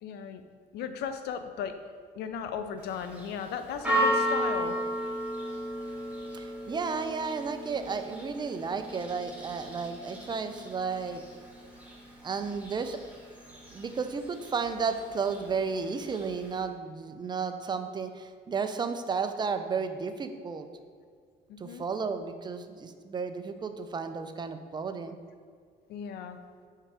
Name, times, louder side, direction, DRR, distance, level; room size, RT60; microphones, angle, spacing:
voice 1, 0.0-0.4 0.7-1.8 2.2-4.8 21.5-21.8 25.9-26.4, left 7 dB, 75° left, 8 dB, 0.6 m, -36 dB
Church bell, 2.8-16.6, equal, 10° right, 1.5 m, -35 dB
voice 2, 6.3-11.2 12.2-13.0 13.7-20.7 21.6-25.2, right 5 dB, 25° right, 8 dB, 0.4 m, -33 dB
4.6 x 4.4 x 4.9 m, 2.1 s
cardioid pair, 110°, 17 cm